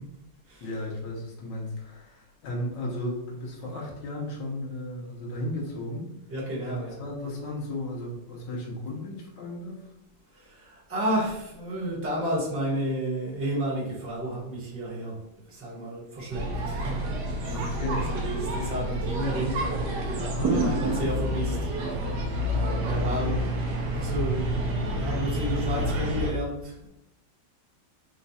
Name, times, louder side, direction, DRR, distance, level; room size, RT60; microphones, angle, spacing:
voice 1, 0.6-6.1 6.6-9.9 17.5-18.1 18.6-18.7 20.3-21.0, left 1 dB, 80° left, -3 dB, 1.7 m, -34 dB
voice 2, 6.3-7.0 10.3-15.2 15.5-17.7 18.1-21.6 21.9-22.1 22.5-23.4 23.7-26.9, right 1 dB, 10° right, -6 dB, 1.1 m, -32 dB
sound 1, 16.3-26.3, right 1 dB, 70° right, 1.3 m, -28 dB
4.3 x 2.4 x 4.1 m, 0.86 s
omnidirectional pair, 1.9 m